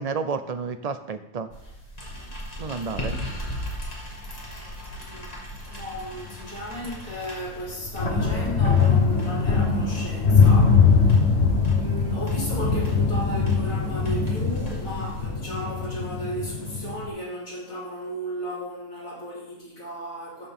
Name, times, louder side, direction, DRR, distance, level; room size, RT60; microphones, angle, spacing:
voice 1, 0.0-1.5 2.6-3.1, right 5 dB, 40° right, 9 dB, 0.6 m, -30 dB
sound 1, 1.5-15.3, equal, 30° left, 2.2 m, -39 dB
voice 2, 5.0-5.4 5.7-11.3 11.7-20.5, right 1 dB, 75° left, -7 dB, 4.5 m, -35 dB
sound 2, 5.8-5.9 6.1-6.3 6.7-7.1 7.7-17.1, left 5 dB, 50° left, 1.6 m, -22 dB
13.0 x 7.5 x 3.8 m, 0.90 s
omnidirectional pair, 1.4 m